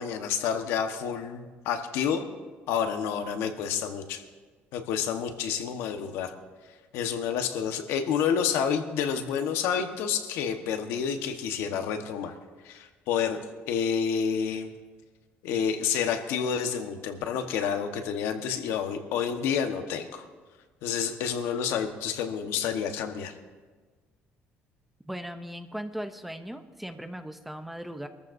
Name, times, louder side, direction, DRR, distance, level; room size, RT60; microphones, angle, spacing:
voice 1, 0.0-2.2 2.7-4.2 4.7-6.3 6.9-12.4 12.6-13.4 13.7-14.7 15.4-20.3 20.8-23.3, left 7 dB, 85° left, 6 dB, 1.2 m, -29 dB
voice 2, 25.1-28.1, equal, 5° right, 8 dB, 0.6 m, -38 dB
25.5 x 14.0 x 2.6 m, 1.4 s
cardioid pair, 155°, 4 cm